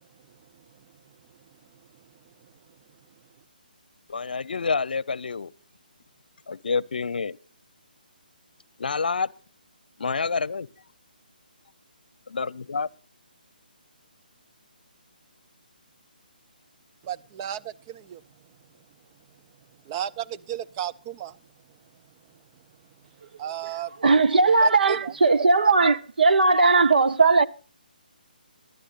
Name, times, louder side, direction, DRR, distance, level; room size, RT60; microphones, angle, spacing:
voice 1, 4.1-5.5 6.5-7.4 8.8-9.3 10.0-10.7 12.3-12.9, left 5 dB, 65° left, 0.7 m, -28 dB
voice 2, 17.0-18.2 19.9-21.4 23.4-23.9 24.6-25.1, right 11 dB, 25° right, 0.6 m, -34 dB
voice 3, 24.0-27.5, right 3 dB, 70° right, 1.1 m, -18 dB
23.0 x 12.0 x 2.5 m
figure-of-eight pair, 150°, 5 cm